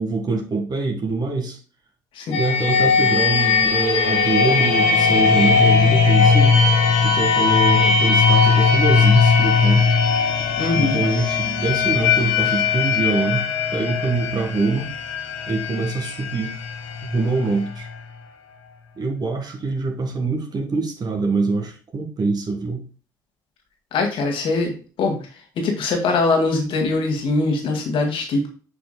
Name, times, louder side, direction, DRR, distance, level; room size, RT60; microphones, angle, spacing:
voice 1, 0.0-1.6 2.4-6.6 7.0-9.9 10.8-13.5 13.7-14.9 15.5-16.5 17.0-17.9 19.0-22.8, right 3 dB, 40° right, 3 dB, 1.9 m, -24 dB
sound 1, 2.3-18.0, left 5 dB, 75° left, 1.4 m, -18 dB
voice 2, 10.6-11.0 23.9-24.7 25.0-25.2 25.6-28.5, left 3 dB, 55° left, 2 dB, 2.1 m, -22 dB
8.1 x 5.8 x 2.2 m, 0.36 s
figure-of-eight pair, 50°, 10 cm